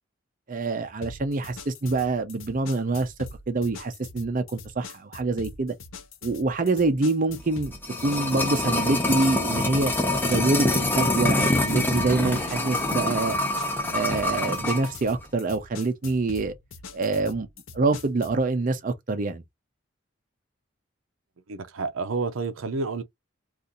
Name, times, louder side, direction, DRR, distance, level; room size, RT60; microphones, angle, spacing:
voice 1, 0.5-3.1 3.5-5.7 6.2-7.8 8.0-9.9 10.2-13.4 13.9-16.5 16.9-17.5 17.7-19.4, right 3 dB, 40° right, 0.5 m, -25 dB
sound 1, 1.0-18.5, left 4 dB, 85° left, 0.6 m, -43 dB
sound 2, 7.5-14.9 15.2-15.3, left 2 dB, 10° left, 0.7 m, -25 dB
voice 2, 21.5-23.0, right 4 dB, 90° right, 0.6 m, -29 dB
2.7 x 2.5 x 3.8 m
head